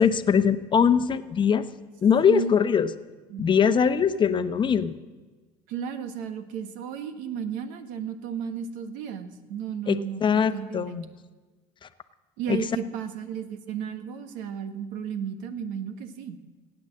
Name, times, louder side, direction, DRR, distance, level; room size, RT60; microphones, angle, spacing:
voice 1, 0.0-1.6 2.0-2.9 3.4-4.9 9.9-10.0 10.2-11.1 11.8-11.9 12.5-12.6, left 7 dB, 35° left, 11 dB, 0.8 m, -21 dB
voice 2, 5.7-10.2 10.5-11.0 12.4-16.4, right 7 dB, 75° right, 11 dB, 1.4 m, -33 dB
18.0 x 8.9 x 7.6 m, 1.3 s
supercardioid pair, 95°, 14 cm